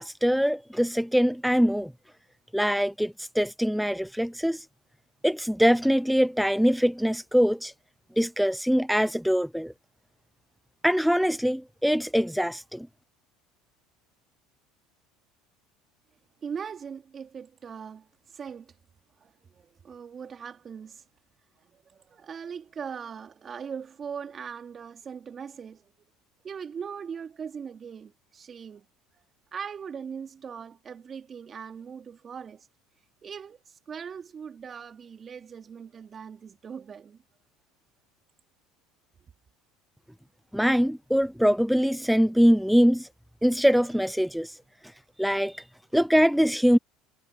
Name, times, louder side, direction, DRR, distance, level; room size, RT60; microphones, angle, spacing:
voice 1, 0.0-1.9 2.5-4.7 5.2-7.7 8.2-9.7 10.8-12.9 40.5-43.1 43.4-44.6 45.2-45.6 45.9-46.8, equal, ahead, 0.6 m, -23 dB
voice 2, 16.4-18.8 19.2-21.0 21.6-25.9 26.4-28.8 29.1-29.2 29.5-32.7 33.2-37.2, right 7 dB, 35° right, 3.2 m, -40 dB
hypercardioid pair, 80°, 0 cm